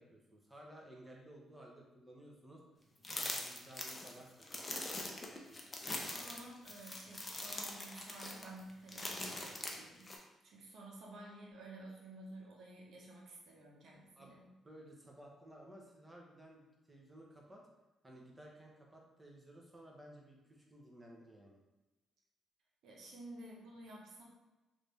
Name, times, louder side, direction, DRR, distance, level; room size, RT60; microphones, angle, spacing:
voice 1, 0.0-2.6 3.1-5.1 14.2-14.3 14.6-17.7 18.0-21.6, right 1 dB, 15° right, -1 dB, 0.8 m, -56 dB
sound 1, 3.0-10.2, left 2 dB, 20° left, 0.6 m, -43 dB
voice 2, 5.9-10.1 10.4-14.5 22.8-24.2, right 1 dB, 70° right, -2 dB, 0.9 m, -52 dB
3.3 x 2.6 x 3.3 m, 1.1 s
cardioid pair, 90°, 0 cm